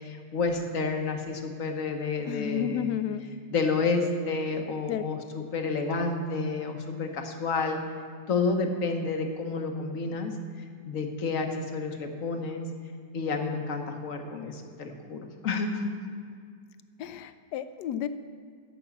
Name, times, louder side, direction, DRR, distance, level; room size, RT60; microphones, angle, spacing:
voice 1, 0.0-3.0 3.5-7.8 8.3-10.3 10.8-12.6 13.1-15.9, left 4 dB, 50° left, 4 dB, 1.3 m, -30 dB
voice 2, 2.3-3.3 4.5-4.6 4.9-5.0 17.0-18.1, left 10 dB, 75° left, 12 dB, 1.1 m, -32 dB
14.0 x 6.1 x 7.1 m, 2.1 s
omnidirectional pair, 1.9 m